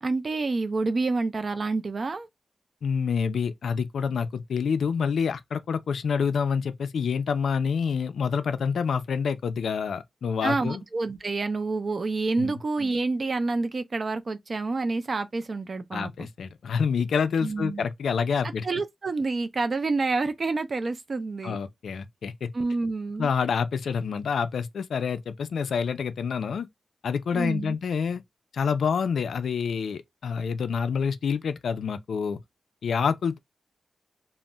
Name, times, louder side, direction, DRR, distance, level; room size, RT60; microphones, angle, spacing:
voice 1, 0.0-2.3 10.4-16.1 17.4-17.8 18.6-21.6 22.5-23.3 27.3-27.8, right 3 dB, 40° right, 0.3 m, -28 dB
voice 2, 2.8-10.8 12.4-12.6 15.9-18.7 21.4-22.5 23.2-26.7 27.0-28.2 28.5-32.4 32.8-33.4, left 6 dB, 85° left, 0.3 m, -27 dB
2.2 x 2.0 x 3.7 m
wide cardioid pair, 155°, 0 cm